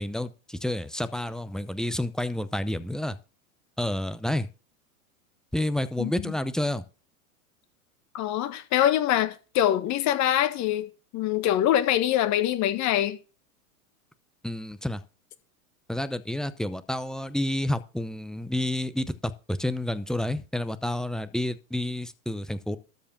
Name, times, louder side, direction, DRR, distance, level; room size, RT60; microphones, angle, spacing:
voice 1, 0.0-3.2 3.8-4.5 5.5-6.8 14.4-15.0 15.9-22.8, left 1 dB, ahead, 0.6 m, -29 dB
voice 2, 6.0-6.3 8.1-13.2, left 12 dB, 40° left, 1.6 m, -24 dB
13.0 x 4.8 x 7.3 m
hypercardioid pair, 110°, 43 cm